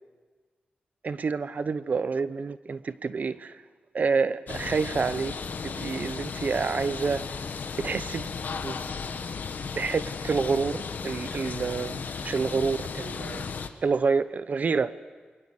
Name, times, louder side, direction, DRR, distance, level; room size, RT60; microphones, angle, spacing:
voice 1, 1.0-3.6 3.9-5.3 5.6-7.3 7.8-8.3 8.6-8.8 9.8-13.5 13.8-14.9, right 5 dB, 55° right, 14 dB, 0.8 m, -28 dB
sound 1, 4.5-13.7, left 5 dB, 70° left, 1.5 m, -35 dB
29.0 x 22.5 x 6.7 m, 1.4 s
wide cardioid pair, 95°, 3 cm